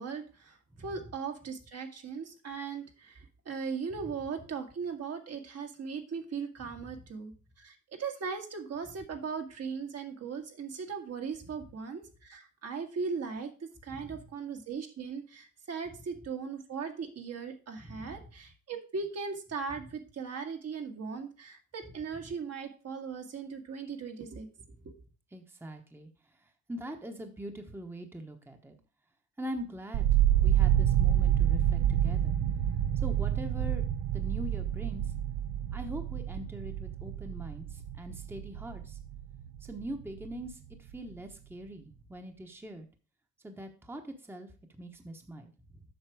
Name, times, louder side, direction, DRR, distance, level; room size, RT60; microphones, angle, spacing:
voice 1, 0.0-24.5 24.8-24.9, right 5 dB, 55° right, 3 dB, 1.7 m, -38 dB
voice 2, 17.8-18.2 25.3-26.1 26.7-28.8 29.4-32.4 33.0-33.8 34.1-35.1 35.7-39.0 39.6-42.8 43.4-44.5 44.8-45.8, equal, 5° right, 5 dB, 1.1 m, -42 dB
sound 1, 29.9-39.9 40.2-40.9, right 11 dB, 85° right, 0.8 m, -28 dB
7.9 x 5.7 x 4.8 m, 0.36 s
cardioid pair, 90°, 30 cm